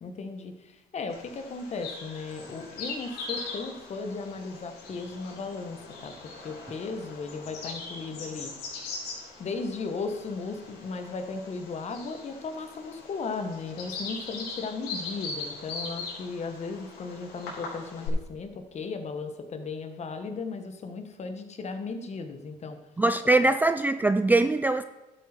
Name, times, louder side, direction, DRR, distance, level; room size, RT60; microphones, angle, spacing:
voice 1, 0.0-8.5 9.4-22.8, left 4 dB, 40° left, 7 dB, 1.4 m, -36 dB
Bird vocalization bird call bird song, 1.1-18.1, left 4 dB, 80° left, 4.1 m, -41 dB
voice 2, 23.0-24.8, right 2 dB, 10° right, 11 dB, 0.3 m, -22 dB
12.0 x 7.8 x 4.5 m, 1.1 s
cardioid pair, 110°, 17 cm